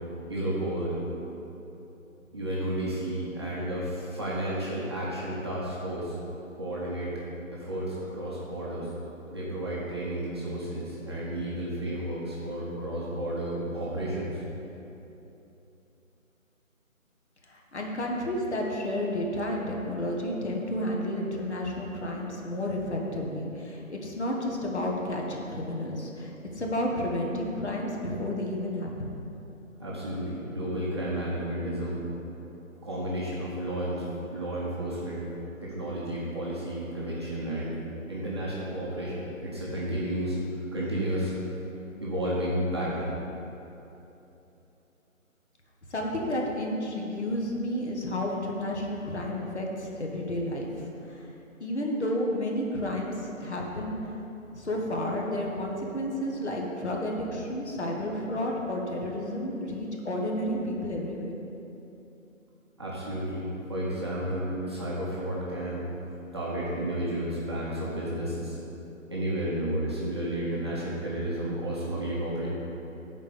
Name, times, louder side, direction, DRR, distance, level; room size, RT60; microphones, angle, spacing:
voice 1, 0.3-1.0 2.3-6.1 6.5-7.1 7.5-8.9 9.3-14.4 29.8-32.0 32.8-34.0 34.3-35.3 35.6-37.8 38.1-40.4 40.7-41.3 42.0-43.1 62.8-65.8 66.3-68.6 69.1-72.5, right 1 dB, 20° right, -8 dB, 0.9 m, -32 dB
voice 2, 17.5-29.1 45.9-51.3 51.6-54.0 54.5-61.3, left 1 dB, 55° left, -1 dB, 1.6 m, -31 dB
10.0 x 4.5 x 6.8 m, 3.0 s
figure-of-eight pair, 155°, 41 cm